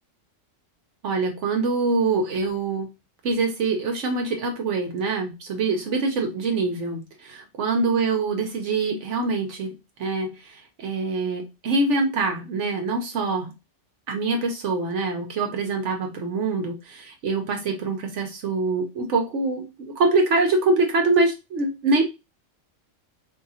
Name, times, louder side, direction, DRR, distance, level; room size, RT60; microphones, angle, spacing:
voice 1, 1.0-2.9 3.2-9.7 10.0-13.5 14.1-22.1, right 3 dB, 75° right, 3 dB, 1.0 m, -24 dB
3.7 x 2.7 x 2.6 m, 0.25 s
omnidirectional pair, 1.3 m